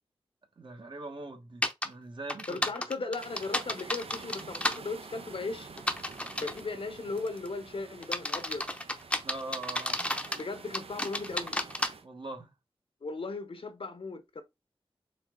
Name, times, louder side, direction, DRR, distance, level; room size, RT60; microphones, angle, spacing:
voice 1, 0.6-2.7 9.2-10.2 12.0-12.5, right 2 dB, 55° right, 1.3 m, -42 dB
sound 1, 1.6-1.9 2.3-4.8 5.8-6.6 7.2-7.5 8.0-10.4 10.7-11.9, left 1 dB, 10° left, 0.7 m, -32 dB
voice 2, 2.5-5.7 6.4-8.6 10.3-11.6 13.0-14.4, left 3 dB, 65° left, 0.9 m, -37 dB
sound 2, 3.2-12.0, right 4 dB, 75° right, 0.7 m, -48 dB
4.2 x 3.3 x 3.7 m
wide cardioid pair, 75°, 10 cm